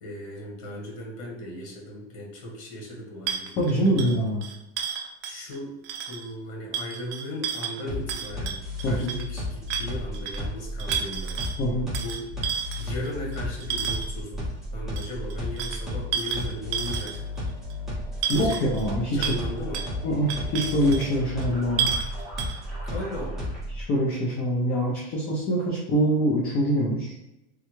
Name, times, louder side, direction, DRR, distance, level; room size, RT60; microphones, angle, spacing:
voice 1, 0.0-4.1 5.2-5.7 6.1-11.4 12.0-12.2 12.8-17.2 18.2-18.7 19.1-19.8 22.9-23.5, left 1 dB, 70° left, -1 dB, 1.3 m, -37 dB
sound 1, 3.3-5.6 5.8-6.3 6.7-9.3 9.7-10.4 10.8-11.6 11.9-14.2 15.0-17.4 17.7-17.8 18.2-18.9 19.2-19.4 19.7-19.9 20.3-21.1 21.4-21.5 21.8-22.1 22.4-22.6, right 8 dB, 45° right, 0.5 m, -31 dB
voice 2, 3.6-4.4 8.8-9.1 11.6-11.9 18.3-19.3 20.0-21.9 23.7-27.1, equal, 25° left, -3 dB, 0.4 m, -24 dB
sound 2, 7.9-23.8, left 1 dB, ahead, 0.7 m, -33 dB
3.5 x 2.2 x 3.0 m, 0.89 s
supercardioid pair, 160°, 35 cm